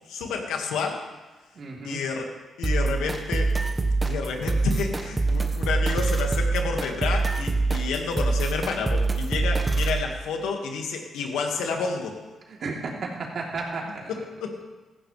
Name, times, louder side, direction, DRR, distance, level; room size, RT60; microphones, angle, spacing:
voice 1, 0.1-1.0 1.8-2.3 2.6-3.5 4.0-12.2 14.1-14.6, left 5 dB, 90° left, 2 dB, 1.9 m, -30 dB
voice 2, 1.5-2.0 12.5-14.1, right 3 dB, 60° right, -2 dB, 3.3 m, -33 dB
sound 1, 2.6-10.0, right 3 dB, 25° right, 1.4 m, -25 dB
16.5 x 14.0 x 3.4 m, 1.2 s
cardioid pair, 75°, 0 cm